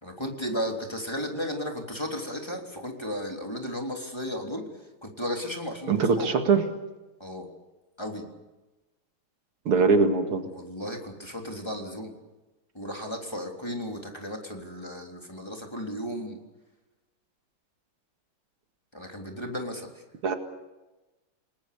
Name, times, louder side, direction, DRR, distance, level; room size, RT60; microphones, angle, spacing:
voice 1, 0.0-6.3 7.2-7.5 8.0-8.3 10.5-12.2 12.7-16.4 18.9-20.0, equal, 10° left, 1 dB, 3.4 m, -34 dB
voice 2, 5.9-6.6 9.7-10.4 20.2-20.4, right 4 dB, 85° right, 5 dB, 2.9 m, -22 dB
29.5 x 19.5 x 6.9 m, 1.1 s
omnidirectional pair, 2.4 m